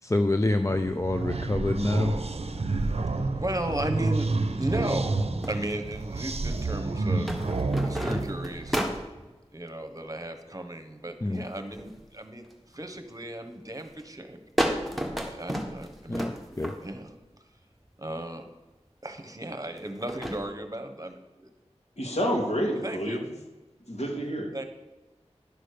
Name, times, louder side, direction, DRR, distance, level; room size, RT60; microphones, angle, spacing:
voice 1, 0.0-2.2 8.1-8.2 11.2-11.4 16.1-16.7, left 2 dB, 25° left, 0.5 m, -27 dB
sound 1, 0.7-8.8, right 3 dB, 60° right, 0.7 m, -29 dB
voice 2, 3.3-7.3 7.8-8.8 9.5-14.4 15.1-16.4 16.8-17.1 18.0-18.5 19.0-21.5 22.8-23.2 24.5-24.6, right 1 dB, 30° right, 1.2 m, -35 dB
sound 2, 5.4-6.4 7.2-9.3 11.3-12.0 12.4-12.9 13.4-13.7 14.0-14.1 14.6-17.1 17.8-17.9 19.8-20.4, equal, ahead, 1.6 m, -32 dB
voice 3, 22.0-23.3 23.9-24.6, equal, 70° left, 2.4 m, -29 dB
11.0 x 6.4 x 6.7 m
wide cardioid pair, 60°, 12 cm